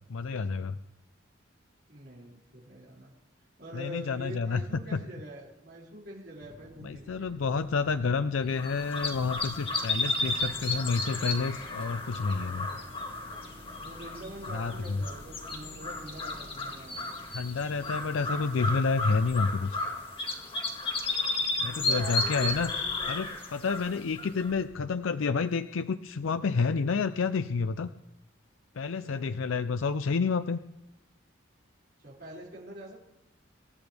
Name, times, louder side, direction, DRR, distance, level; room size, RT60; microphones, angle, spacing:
voice 1, 0.1-0.8 3.7-5.0 6.8-12.7 14.5-15.0 17.3-19.8 21.6-22.7 23.1-27.9 28.8-30.6, left 4 dB, 85° left, 11 dB, 0.5 m, -29 dB
voice 2, 1.9-3.1 3.6-7.3 13.8-17.1 21.5-23.1 29.0-29.3 32.0-33.0, right 1 dB, 55° right, -6 dB, 5.9 m, -45 dB
sound 1, 6.4-18.5, equal, 85° right, 4.3 m, -51 dB
sound 2, 8.6-24.6, left 2 dB, 25° left, 2.1 m, -33 dB
27.0 x 14.0 x 3.5 m, 0.97 s
head